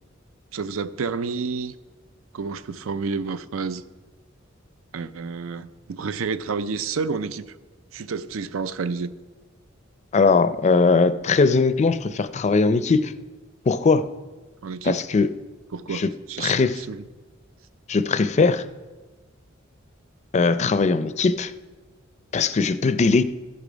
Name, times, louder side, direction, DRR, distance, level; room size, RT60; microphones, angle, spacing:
voice 1, 0.5-1.7 2.3-3.8 4.9-7.5 7.9-9.1 14.6-15.0 15.7-17.0, right 5 dB, 85° right, 14 dB, 0.5 m, -30 dB
voice 2, 10.1-13.1 13.7-14.0 14.8-15.3 15.9-16.1 16.4-16.8 17.9-18.6 20.3-21.5 22.3-23.2, left 4 dB, 35° left, 13 dB, 0.4 m, -20 dB
14.5 x 6.8 x 5.1 m, 1.3 s
head